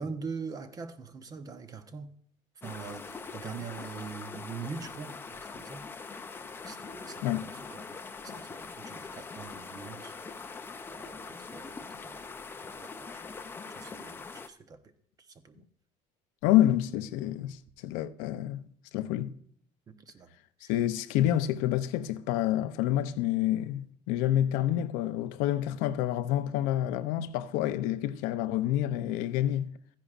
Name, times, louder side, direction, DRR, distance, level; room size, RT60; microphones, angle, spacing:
voice 1, 0.0-2.1 2.6-5.8 6.6-8.0 8.3-10.2 10.9-11.7 12.0-12.3 12.6-13.3 13.8-14.8 15.4-15.6 19.9-20.3, right 5 dB, 25° right, 0.9 m, -43 dB
sound 1, 2.6-14.5, left 4 dB, 15° left, 0.5 m, -43 dB
voice 2, 16.4-18.6 18.9-19.3 20.7-29.7, left 12 dB, 85° left, 0.6 m, -28 dB
14.5 x 10.0 x 2.5 m
cardioid pair, 145°, 13 cm